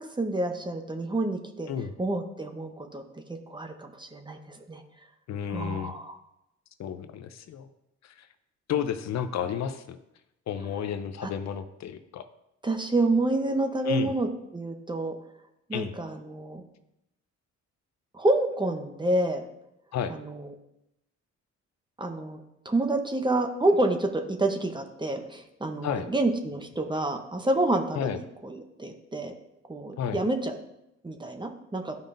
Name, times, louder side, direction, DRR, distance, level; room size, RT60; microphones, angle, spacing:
voice 1, 0.0-1.7 2.0-3.0 3.5-4.8 5.5-6.2 11.2-11.3 12.6-14.3 14.5-15.1 15.7-16.6 18.1-19.4 20.1-20.5 22.0-29.3 29.7-30.6 31.0-32.0, right 2 dB, 15° right, 6 dB, 0.9 m, -28 dB
voice 2, 5.3-5.9 6.8-7.7 8.0-8.3 8.7-10.0 10.5-12.3 13.8-14.1 15.7-15.9 19.9-20.1 25.8-26.1 27.9-28.2 30.0-30.2, left 8 dB, 65° left, 9 dB, 0.6 m, -32 dB
12.0 x 5.2 x 2.6 m, 0.85 s
cardioid pair, 90°, 30 cm